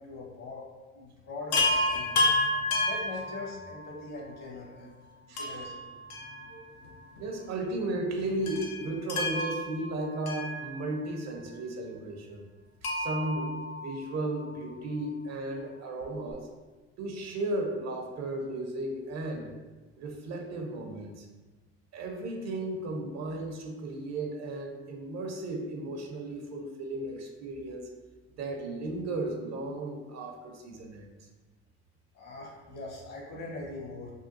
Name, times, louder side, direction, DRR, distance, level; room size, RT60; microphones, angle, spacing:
voice 1, 0.0-2.3 2.8-5.0 5.3-5.8 32.1-34.1, left 2 dB, 55° left, -2 dB, 1.1 m, -42 dB
Chime, 1.5-3.9 5.4-6.9 7.2-7.3 8.5-11.2 12.8-14.4 16.0-16.1 16.3-16.4, left 2 dB, 85° left, 0.6 m, -31 dB
voice 2, 5.3-5.6 6.5-6.7 7.2-12.4 12.8-16.5 17.0-19.5 20.0-21.3 21.9-27.9 28.4-31.2, right 2 dB, 55° right, 2 dB, 0.6 m, -35 dB
3.6 x 2.2 x 2.6 m, 1.2 s
supercardioid pair, 75°, 33 cm